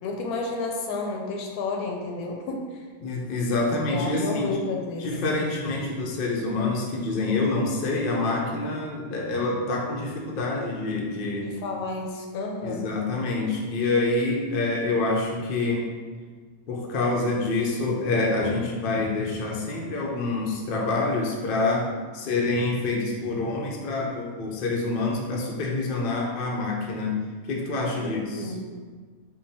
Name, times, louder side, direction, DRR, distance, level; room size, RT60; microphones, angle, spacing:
voice 1, 0.0-2.8 3.6-5.1 11.4-12.9 28.0-28.7, left 3 dB, 80° left, 1 dB, 1.1 m, -31 dB
voice 2, 3.0-4.6 5.0-11.5 12.6-15.9 16.7-21.9 22.1-27.2 27.5-28.5, left 2 dB, 60° left, -1 dB, 0.5 m, -26 dB
3.7 x 2.2 x 4.0 m, 1.5 s
omnidirectional pair, 1.6 m